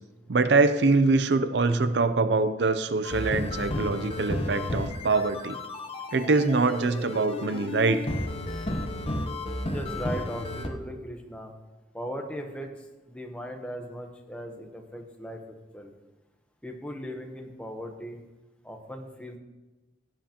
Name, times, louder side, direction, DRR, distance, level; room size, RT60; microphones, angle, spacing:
voice 1, 0.3-5.6 6.1-8.1, right 3 dB, 65° right, 11 dB, 0.6 m, -24 dB
sound 1, 3.0-10.7, left 1 dB, 30° left, 0.9 m, -33 dB
voice 2, 9.7-11.5 11.9-15.9 16.6-18.2 18.6-19.4, equal, 5° left, 3 dB, 1.0 m, -38 dB
16.5 x 7.7 x 3.0 m, 1.1 s
head